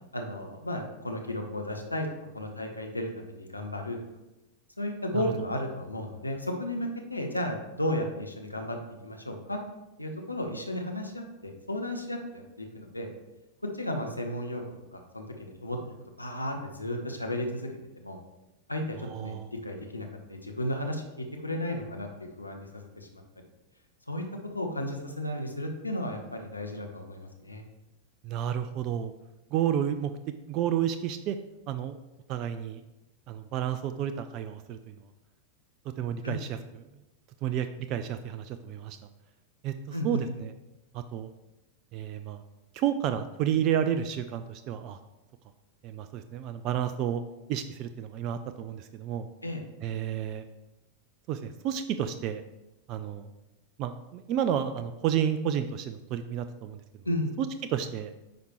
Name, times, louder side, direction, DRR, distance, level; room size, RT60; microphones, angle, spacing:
voice 1, 0.1-2.1 2.3-4.0 4.8-8.8 9.0-9.6 10.0-13.1 13.7-14.6 14.9-15.8 16.2-17.7 18.0-18.2 18.7-19.3 19.6-23.2 24.1-24.2 24.5-27.6 36.2-36.4 39.9-40.2 49.4-49.6 57.0-57.3, left 1 dB, 85° left, 3 dB, 1.0 m, -34 dB
voice 2, 19.0-19.5 28.2-29.1 29.5-30.1 30.5-31.4 31.7-32.0 32.3-32.8 33.3-35.0 36.0-36.6 37.4-39.0 39.6-40.5 40.9-41.3 41.9-42.4 42.7-45.0 45.8-47.2 47.5-49.3 49.8-50.5 51.3-52.4 52.9-53.3 53.8-56.8 57.4-58.1, right 9 dB, 40° right, 10 dB, 0.4 m, -31 dB
9.2 x 5.2 x 3.0 m, 0.97 s
figure-of-eight pair, 90°, 0 cm